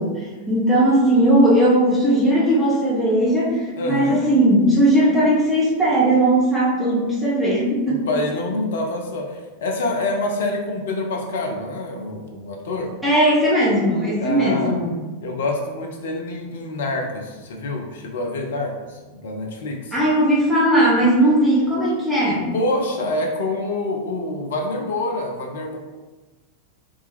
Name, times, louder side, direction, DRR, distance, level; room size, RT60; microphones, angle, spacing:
voice 1, 0.0-8.1 13.0-14.9 19.9-22.5, right 1 dB, ahead, -8 dB, 1.3 m, -18 dB
voice 2, 3.8-4.2 7.9-12.9 14.2-14.7 15.2-20.0 22.5-25.8, left 2 dB, 60° left, 2 dB, 0.6 m, -26 dB
3.6 x 2.9 x 3.2 m, 1.3 s
figure-of-eight pair, 90°, 0 cm